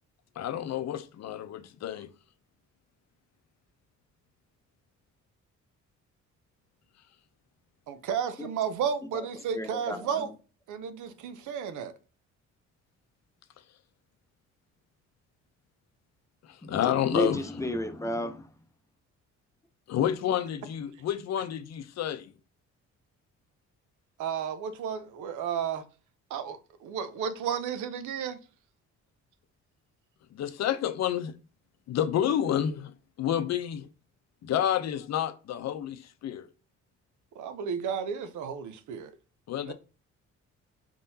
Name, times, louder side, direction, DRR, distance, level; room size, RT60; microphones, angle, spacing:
voice 1, 0.4-2.1 16.4-17.4 19.9-22.3 30.3-31.4 31.9-33.9 34.4-36.5 39.5-39.7, left 10 dB, 60° left, 0.6 m, -29 dB
voice 2, 7.9-10.3 10.7-11.9 24.2-25.8 26.3-28.4 37.4-39.1 39.7-39.8, right 7 dB, 80° right, 0.7 m, -33 dB
voice 3, 9.5-10.2 16.6-18.5, equal, 10° left, 0.6 m, -33 dB
4.5 x 3.7 x 2.7 m
cardioid pair, 90°, 30 cm